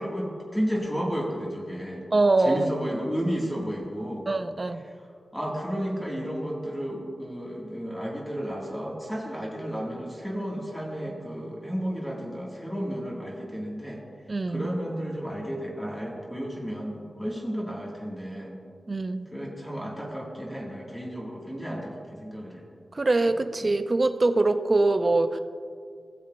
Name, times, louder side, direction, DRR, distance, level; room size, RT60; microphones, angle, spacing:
voice 1, 0.0-2.0 2.4-4.3 5.3-14.0 14.5-18.6 19.3-22.6, equal, 5° left, -3 dB, 2.1 m, -32 dB
voice 2, 2.1-2.7 4.3-4.8 14.3-14.7 18.9-19.3 22.9-25.4, right 2 dB, 40° right, 10 dB, 0.6 m, -23 dB
17.0 x 7.2 x 2.6 m, 2.2 s
cardioid pair, 65°, 0 cm